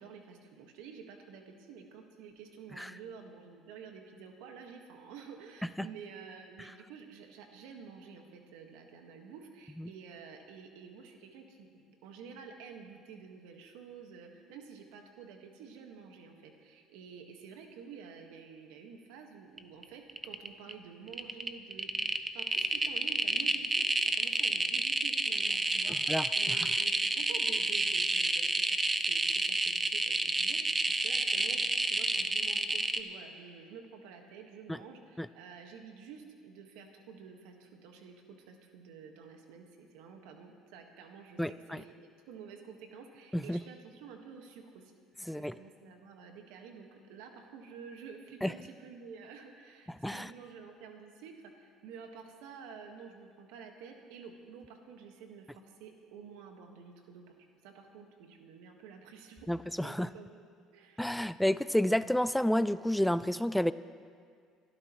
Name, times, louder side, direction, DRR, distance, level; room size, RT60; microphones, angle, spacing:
voice 1, 0.0-44.9 45.2-59.5 59.8-60.4 60.7-61.1, right 6 dB, 85° right, 4 dB, 1.6 m, -50 dB
sound 1, 19.6-19.8 20.1-20.7 21.1-33.0, right 2 dB, 20° right, 0.8 m, -29 dB
voice 2, 25.9-26.6 34.7-34.8 35.2-35.3 41.4-41.8 43.3-43.6 45.3-45.6 48.4-48.5 50.0-50.3 59.5-60.1 61.0-63.7, left 1 dB, 5° left, 15 dB, 0.3 m, -30 dB
25.5 x 12.5 x 3.1 m, 2.1 s
supercardioid pair, 90°, 0 cm